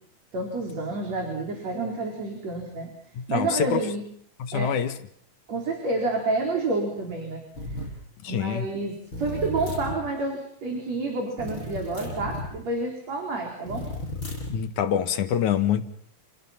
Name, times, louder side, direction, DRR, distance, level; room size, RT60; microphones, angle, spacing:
voice 1, 0.3-2.9 3.3-4.0 4.5-4.7 5.5-7.4 8.3-13.9, right 3 dB, 65° right, 5.5 m, -29 dB
voice 2, 3.2-3.9 4.4-5.0 8.2-8.7 14.5-15.8, left 8 dB, 85° left, 3.0 m, -25 dB
sound 1, 7.5-8.0 9.1-10.0 11.4-12.5 13.7-14.6, left 2 dB, 40° left, 8.9 m, -34 dB
30.0 x 29.5 x 5.9 m
omnidirectional pair, 3.3 m